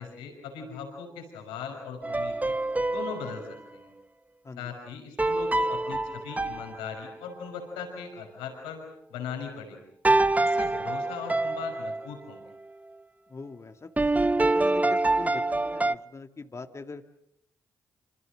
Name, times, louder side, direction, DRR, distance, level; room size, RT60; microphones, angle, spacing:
voice 1, 0.0-2.6 2.9-3.4 3.7-3.9 4.6-8.8 9.1-9.8 10.4-12.4, left 6 dB, 90° left, 3 dB, 5.8 m, -39 dB
sound 1, 2.0-3.6 5.2-7.4 10.0-12.1 14.0-15.9, right 2 dB, 20° right, 0.9 m, -26 dB
voice 2, 13.3-13.9 14.2-17.0, left 4 dB, 35° left, 6 dB, 2.0 m, -42 dB
27.0 x 26.0 x 6.5 m, 0.75 s
supercardioid pair, 50°, 8 cm